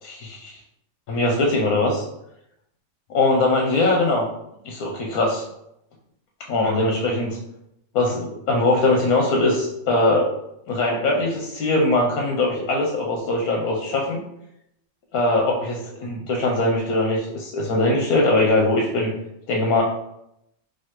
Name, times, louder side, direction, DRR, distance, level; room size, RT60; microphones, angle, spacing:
voice 1, 0.0-0.6 1.1-2.0 3.1-4.3 4.6-5.4 6.5-7.4 7.9-10.3 10.7-14.2 15.1-19.1 19.5-19.8, left 2 dB, 70° left, -1 dB, 1.0 m, -21 dB
4.1 x 2.5 x 2.9 m, 0.81 s
omnidirectional pair, 1.9 m